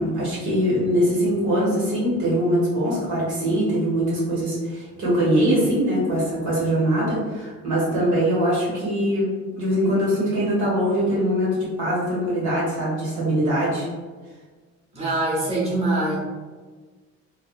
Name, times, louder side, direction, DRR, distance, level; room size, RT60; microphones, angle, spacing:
voice 1, 0.0-9.3 9.5-13.9, equal, 75° right, -6 dB, 1.4 m, -22 dB
voice 2, 14.9-16.2, right 2 dB, 20° right, -7 dB, 1.2 m, -23 dB
3.5 x 2.2 x 2.3 m, 1.4 s
cardioid pair, 90°, 30 cm